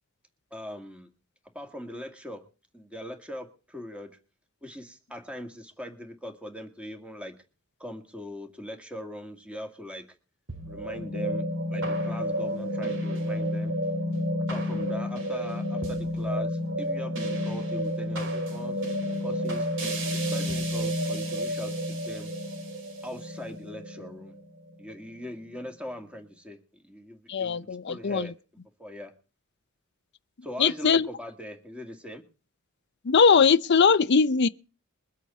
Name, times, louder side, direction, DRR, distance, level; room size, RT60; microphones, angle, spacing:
voice 1, 0.5-1.1 1.5-2.4 2.7-4.1 4.6-7.3 7.8-10.1 10.7-11.4 11.7-13.7 14.4-18.8 19.2-19.7 20.1-22.3 23.0-24.4 24.8-28.3 28.8-29.1 30.4-32.2, equal, 5° right, 2.0 m, -40 dB
sound 1, 10.5-24.9, equal, 60° right, 2.7 m, -30 dB
voice 2, 27.3-28.3 30.6-31.1 33.0-34.5, left 5 dB, 55° left, 0.6 m, -20 dB
22.5 x 8.2 x 4.2 m
head